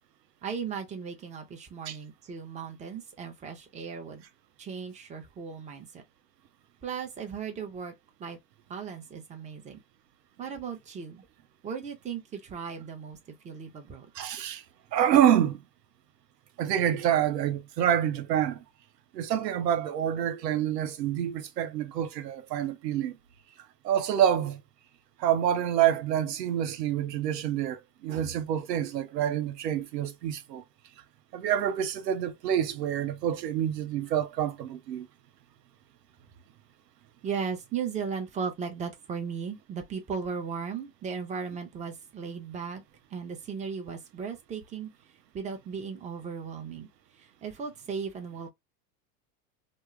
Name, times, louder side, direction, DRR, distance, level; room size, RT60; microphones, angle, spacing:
voice 1, 0.4-4.2 4.6-6.0 6.8-7.9 8.2-8.4 8.7-9.8 10.4-11.2 11.6-13.2 13.4-14.1 37.2-42.8 43.1-44.9 45.3-46.9 47.1-48.5, right 6 dB, 15° right, 0.5 m, -36 dB
voice 2, 14.2-14.6 14.9-15.6 16.6-18.6 19.1-23.2 23.8-24.6 25.2-30.6 31.3-35.1, right 10 dB, 80° right, 0.6 m, -27 dB
2.2 x 2.0 x 3.0 m
hypercardioid pair, 85°, 49 cm